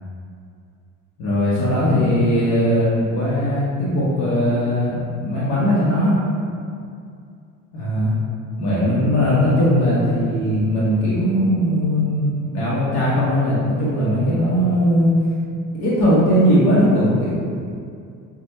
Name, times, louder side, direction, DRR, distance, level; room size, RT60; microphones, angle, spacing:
voice 1, 1.2-6.2 7.7-8.1 8.6-15.1 15.8-17.4, equal, 60° left, -9 dB, 1.1 m, -19 dB
5.1 x 2.4 x 3.0 m, 2.3 s
figure-of-eight pair, 60°, 45 cm